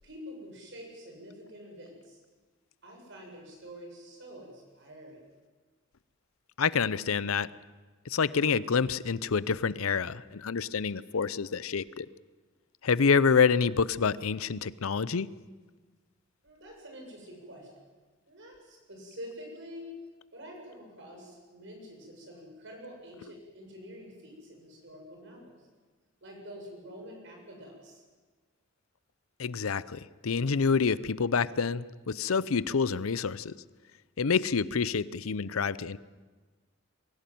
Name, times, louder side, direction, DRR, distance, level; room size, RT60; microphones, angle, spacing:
voice 1, 0.0-2.2 2.8-5.2 16.4-17.7 18.3-19.9 20.3-25.7 26.2-28.0, equal, 60° right, 1 dB, 7.2 m, -47 dB
voice 2, 6.6-7.5 8.1-12.1 12.8-15.3 29.4-33.5 34.2-36.0, left 5 dB, 85° left, 18 dB, 0.6 m, -27 dB
23.0 x 16.0 x 9.2 m, 1.4 s
head